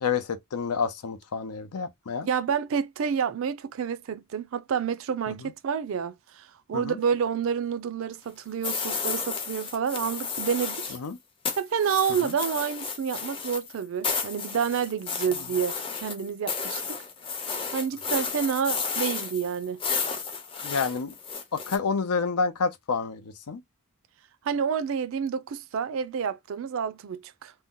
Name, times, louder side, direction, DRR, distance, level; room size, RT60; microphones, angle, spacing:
voice 1, 0.0-2.3 5.4-5.5 6.7-7.0 10.9-11.2 12.2-12.3 20.6-21.1 21.5-23.6, left 5 dB, 90° left, 0.6 m, -29 dB
voice 2, 2.2-11.0 11.6-17.0 17.7-19.8 24.4-27.5, right 7 dB, 65° right, 0.4 m, -29 dB
sound 1, 8.6-11.1 11.4-21.8, left 5 dB, 25° left, 0.5 m, -32 dB
2.6 x 2.1 x 3.6 m
head